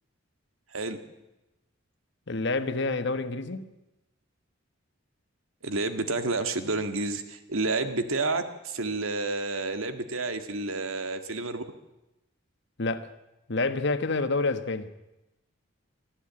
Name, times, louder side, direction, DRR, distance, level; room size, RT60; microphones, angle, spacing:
voice 1, 2.3-3.7 12.8-13.1 13.5-14.9, left 3 dB, 60° left, 1.3 m, -28 dB
voice 2, 5.6-11.6, right 3 dB, 90° right, 1.9 m, -30 dB
23.5 x 14.0 x 8.8 m
head